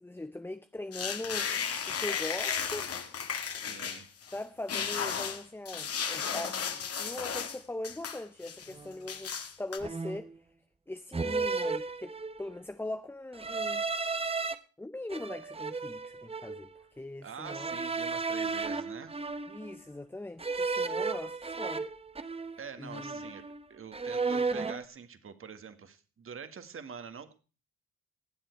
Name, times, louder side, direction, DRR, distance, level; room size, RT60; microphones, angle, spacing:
voice 1, 0.0-1.6 1.9-2.8 4.3-10.3 10.9-13.8 14.8-17.8 19.5-21.9 22.3-23.2, left 2 dB, 5° left, 0.6 m, -41 dB
sound 1, 0.9-4.4 4.7-7.6 7.8-8.7 9.1-9.8, left 7 dB, 50° left, 1.9 m, -34 dB
voice 2, 3.5-4.1 17.2-19.2 22.6-23.4 23.7-27.3, right 6 dB, 45° right, 1.9 m, -45 dB
sound 2, 8.7-9.0 9.8-10.4 11.1-12.5 13.3-14.5 15.1-16.7 17.4-19.8 20.4-22.7 22.9-23.6 23.9-24.8, right 4 dB, 20° right, 1.0 m, -34 dB
19.0 x 7.7 x 4.6 m
cardioid pair, 90°, 30 cm